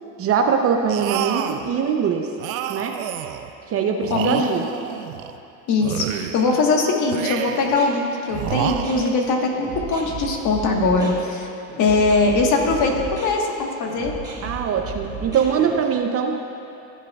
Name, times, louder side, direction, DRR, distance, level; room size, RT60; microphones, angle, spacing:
voice 1, 0.2-2.3 2.7-3.0 3.7-4.7 14.4-16.4, right 7 dB, 35° right, 4 dB, 0.7 m, -22 dB
sound 1, 0.9-1.7 2.4-3.5 4.0-5.4 5.8-6.6 7.1-7.8 8.3-9.3, right 11 dB, 90° right, 0.6 m, -29 dB
voice 2, 4.1-4.5 5.7-11.5 11.8-14.1, left 3 dB, 45° left, 1 dB, 1.4 m, -21 dB
sound 2, 7.6-15.7, right 4 dB, 10° right, 1.9 m, -35 dB
16.0 x 7.4 x 2.4 m, 2.8 s
supercardioid pair, 105°, 40 cm